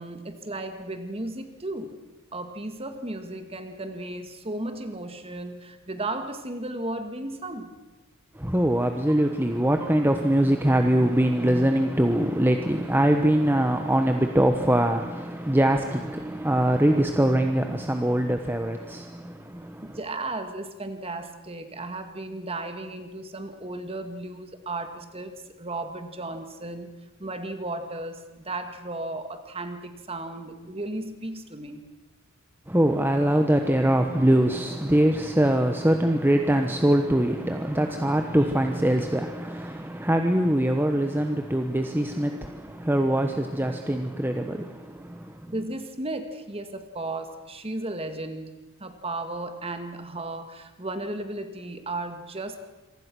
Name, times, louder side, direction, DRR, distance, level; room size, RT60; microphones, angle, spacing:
voice 1, 0.0-1.9 2.3-7.7 19.9-25.3 25.6-26.9 27.2-31.8 45.5-48.5 48.8-52.6, right 2 dB, 25° right, 2.0 m, -35 dB
voice 2, 8.3-20.0 32.7-45.5, right 1 dB, 10° right, 1.1 m, -23 dB
27.0 x 24.0 x 6.2 m
head